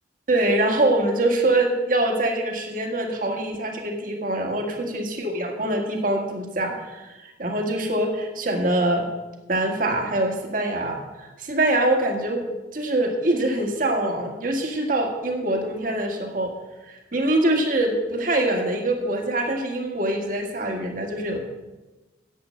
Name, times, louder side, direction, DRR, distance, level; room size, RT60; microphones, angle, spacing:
voice 1, 0.3-9.1 9.5-12.5 12.7-16.5 16.9-21.4, right 1 dB, 50° right, 2 dB, 1.8 m, -24 dB
10.0 x 8.3 x 6.5 m, 1.1 s
head